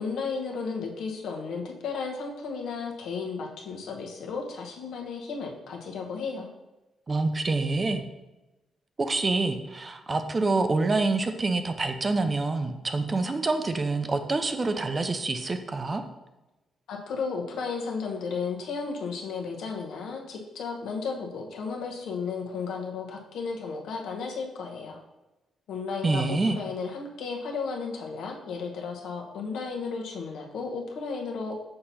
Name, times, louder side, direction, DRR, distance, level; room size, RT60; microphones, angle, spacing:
voice 1, 0.0-6.5 16.9-25.0 25.7-31.6, left 5 dB, 85° left, 0 dB, 1.0 m, -34 dB
voice 2, 7.1-8.0 9.0-16.0 26.0-26.6, right 3 dB, 25° right, 8 dB, 0.5 m, -26 dB
6.6 x 2.9 x 5.5 m, 1.0 s
cardioid pair, 140°, 0 cm